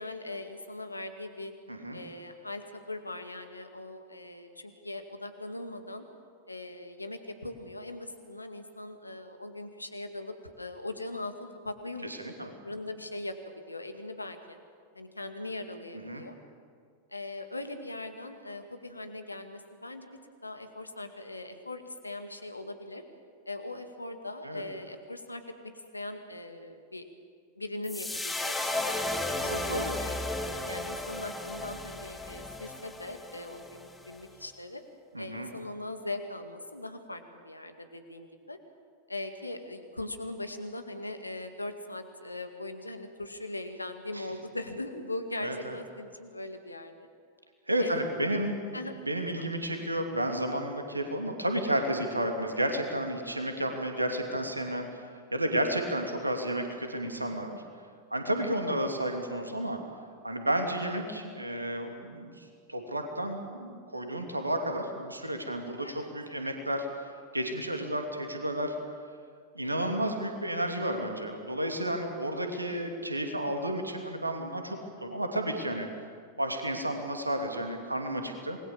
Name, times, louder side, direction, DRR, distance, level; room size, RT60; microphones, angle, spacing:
voice 1, 0.0-1.5 1.9-6.0 6.5-14.6 14.9-16.4 17.1-20.1 20.4-23.0 23.5-25.4 25.9-27.0 27.6-29.4 30.0-34.8 35.2-38.6 39.1-47.1 47.8-48.4 48.7-49.0 49.4-49.5 65.8-66.1 69.6-70.0, left 2 dB, 85° left, 7 dB, 2.0 m, -40 dB
voice 2, 1.7-2.0 12.0-12.5 16.0-16.2 24.4-24.6 29.4-30.0 35.1-35.5 44.1-44.3 45.4-45.7 47.7-48.8 49.0-54.9 55.3-57.6 58.1-59.8 60.2-66.9 67.3-68.8 69.5-75.9 76.4-78.6, right 1 dB, 85° right, 4 dB, 2.7 m, -32 dB
sound 1, 27.8-34.2, left 2 dB, 10° left, 2.5 m, -34 dB
27.0 x 21.0 x 7.3 m, 2.1 s
figure-of-eight pair, 90°, 0 cm